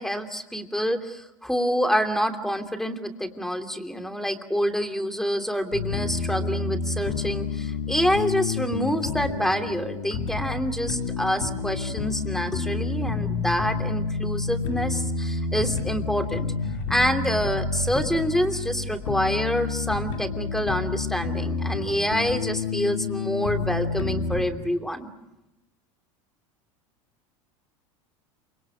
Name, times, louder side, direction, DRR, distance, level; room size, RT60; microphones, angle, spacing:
voice 1, 0.0-16.5 16.9-25.1, equal, ahead, 7 dB, 2.9 m, -27 dB
sound 1, 5.7-24.4, left 4 dB, 75° left, 3.8 m, -29 dB
28.0 x 26.0 x 6.1 m, 0.95 s
hypercardioid pair, 85°, 17 cm